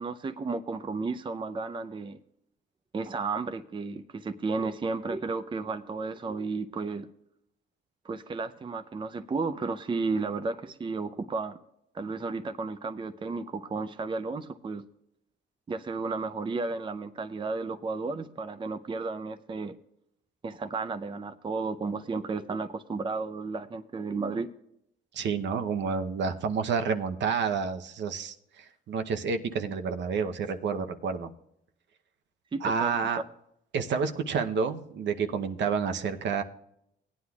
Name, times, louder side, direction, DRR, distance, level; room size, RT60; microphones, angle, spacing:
voice 1, 0.0-2.2 2.9-7.1 8.0-11.6 11.9-14.8 15.7-19.8 20.4-24.5 32.5-32.9, right 4 dB, 25° right, 8 dB, 0.6 m, -33 dB
voice 2, 25.1-31.3 32.6-33.2 33.7-36.4, right 5 dB, 65° right, 6 dB, 0.8 m, -29 dB
17.5 x 9.6 x 2.4 m, 0.76 s
cardioid pair, 90°, 20 cm